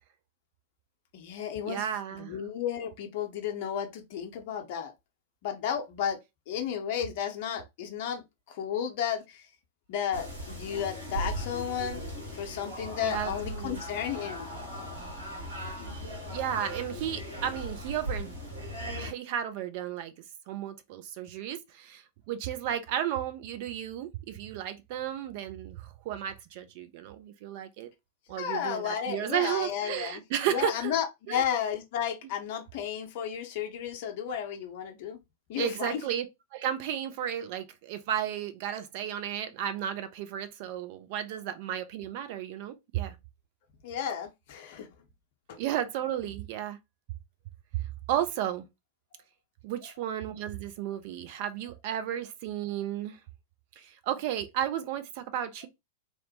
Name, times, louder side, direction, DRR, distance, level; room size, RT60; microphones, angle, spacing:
voice 1, 1.1-1.9 2.1-4.9 5.4-6.2 6.5-9.5 9.9-12.0 12.3-14.5 28.4-30.2 30.5-35.2 35.5-36.0 43.8-44.9 45.5-45.6, left 8 dB, 45° left, 0.6 m, -33 dB
voice 2, 1.6-2.4 13.0-13.8 16.3-18.4 19.0-20.1 20.5-27.9 28.3-30.9 31.3-31.4 35.6-36.3 36.5-43.2 45.6-46.8 48.1-48.7 49.6-53.2 53.8-55.7, right 10 dB, 45° right, 0.5 m, -33 dB
sound 1, 10.1-19.1, equal, 70° right, 1.4 m, -38 dB
2.9 x 2.0 x 2.7 m
figure-of-eight pair, 95°, 0 cm